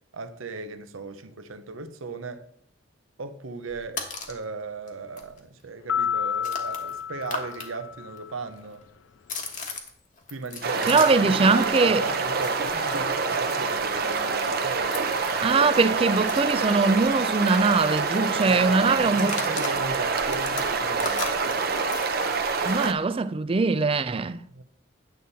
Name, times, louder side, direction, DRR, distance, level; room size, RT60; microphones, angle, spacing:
voice 1, 0.1-2.5 3.2-8.9 10.3-15.0 18.2-21.4 24.5-24.6, right 3 dB, 80° right, 0.8 m, -37 dB
sound 1, 3.7-4.4 4.9-5.0 5.2-7.7 7.9-11.4 11.6-17.3 17.5-17.7 17.9-18.3 19.0-22.8, left 4 dB, 40° left, 1.3 m, -38 dB
sound 2, 5.9-8.4, left 8 dB, 70° left, 0.4 m, -30 dB
sound 3, 10.6-22.9, right 4 dB, 50° right, 0.8 m, -26 dB
voice 2, 10.9-12.0 15.3-19.4 22.6-24.4, right 4 dB, 25° right, 0.4 m, -22 dB
9.4 x 7.0 x 4.1 m
head